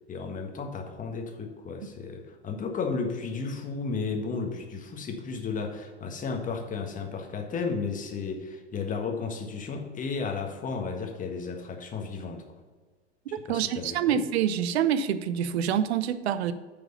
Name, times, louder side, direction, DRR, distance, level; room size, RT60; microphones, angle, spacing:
voice 1, 0.1-12.4 13.3-14.2, left 4 dB, 25° left, 3 dB, 1.5 m, -33 dB
voice 2, 13.5-16.5, right 9 dB, 65° right, 13 dB, 0.8 m, -26 dB
9.4 x 5.2 x 5.5 m, 1.4 s
hypercardioid pair, 100°, 34 cm